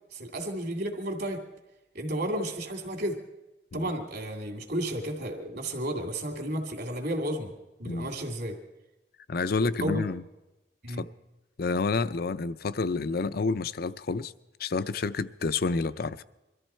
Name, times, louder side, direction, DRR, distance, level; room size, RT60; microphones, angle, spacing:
voice 1, 0.1-1.4 1.9-3.2 3.7-7.5 7.8-8.6 9.6-10.0 10.8-11.0, right 1 dB, 60° right, 2.5 m, -32 dB
voice 2, 9.3-10.2 10.9-11.1 11.6-14.3 14.6-16.2, left 4 dB, 60° left, 0.5 m, -29 dB
23.0 x 13.5 x 4.4 m
head